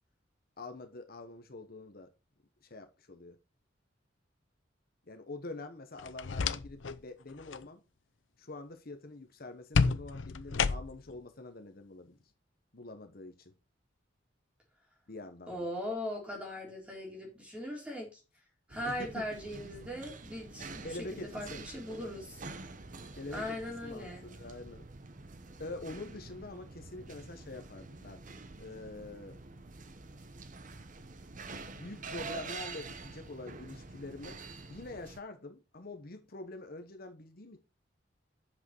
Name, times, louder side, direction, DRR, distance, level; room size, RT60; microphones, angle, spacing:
voice 1, 0.6-2.1 2.6-3.4 5.1-7.8 8.4-12.2 12.7-13.5 15.1-15.7 18.8-19.3 20.8-21.6 23.2-24.9 25.6-28.2 28.6-29.4 31.7-34.4 34.7-37.6, left 2 dB, 55° left, 1.1 m, -45 dB
sound 1, 6.0-7.0 7.3-7.7 9.7-11.2, left 4 dB, 90° left, 0.6 m, -31 dB
voice 2, 15.5-18.2 18.7-22.5 23.3-24.2, left 1 dB, 5° right, 3.6 m, -39 dB
sound 2, 18.7-35.2, right 3 dB, 45° right, 0.9 m, -47 dB
7.9 x 6.4 x 4.4 m
head